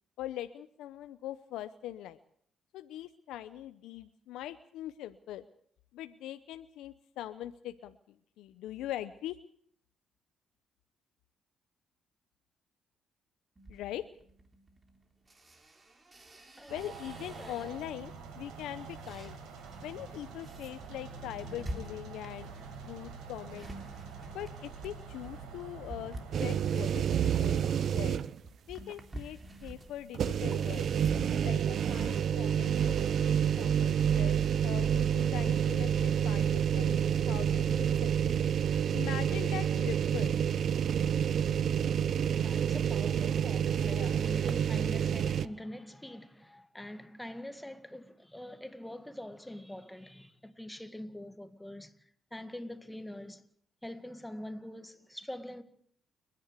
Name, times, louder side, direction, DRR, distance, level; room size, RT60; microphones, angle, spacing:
voice 1, 0.2-2.2 2.7-5.4 5.9-9.4 13.7-14.1 16.7-19.4 19.8-22.5 22.8-23.7 24.3-27.6 27.9-28.2 28.7-30.9 31.4-38.3 38.9-40.4 43.9-44.2, left 13 dB, 90° left, 0.8 m, -42 dB
sound 1, 13.6-18.1 18.5-33.3, right 1 dB, 25° right, 3.5 m, -50 dB
sound 2, 16.7-28.0, right 5 dB, 85° right, 5.8 m, -46 dB
sound 3, 26.3-28.5 28.9-29.0 30.1-45.5, right 8 dB, 60° right, 0.8 m, -28 dB
voice 2, 42.3-51.9 52.3-53.4 53.8-55.6, left 1 dB, 5° left, 2.0 m, -44 dB
30.0 x 11.0 x 8.3 m
cardioid pair, 90°, 0 cm